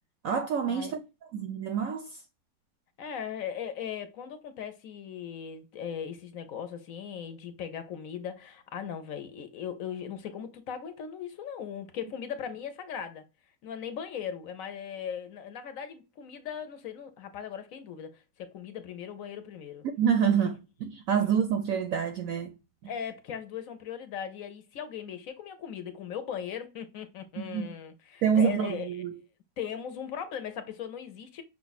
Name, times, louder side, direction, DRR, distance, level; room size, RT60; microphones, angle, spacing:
voice 1, 0.2-1.0 1.3-2.2 19.8-22.6 27.4-27.8 28.2-29.2, right 7 dB, 70° right, 0.8 m, -27 dB
voice 2, 3.0-13.2 13.6-19.8 20.3-20.5 21.1-21.3 22.9-28.9 29.6-31.4, left 8 dB, 65° left, 1.0 m, -38 dB
5.6 x 2.4 x 4.0 m
omnidirectional pair, 1.8 m